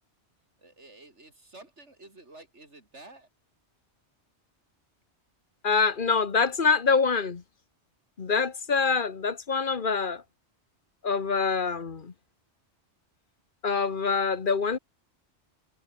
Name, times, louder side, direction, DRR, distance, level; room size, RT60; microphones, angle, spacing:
voice 1, 0.6-3.3, right 2 dB, 80° right, 4.9 m, -50 dB
voice 2, 5.6-7.4 8.2-10.2 11.0-12.1 13.6-14.8, left 5 dB, 50° left, 1.4 m, -25 dB
omnidirectional pair, 1.2 m